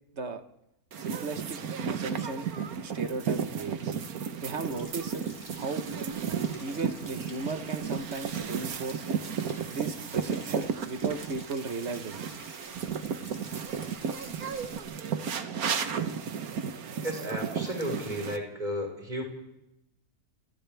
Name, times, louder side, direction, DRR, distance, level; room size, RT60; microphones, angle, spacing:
sound 1, 0.9-18.4, right 7 dB, 70° right, 1.6 m, -33 dB
voice 1, 1.0-1.6 1.9-2.5 2.8-3.9 4.4-5.9 6.6-9.1 9.7-12.3, right 3 dB, 50° right, 9 dB, 1.4 m, -36 dB
Stream / Splash splatter / Trickle dribble, 4.7-14.8, left 1 dB, 10° left, 5.5 m, -51 dB
voice 2, 17.0-19.2, equal, 30° right, 0 dB, 5.3 m, -33 dB
29.0 x 29.0 x 3.5 m, 0.87 s
omnidirectional pair, 1.6 m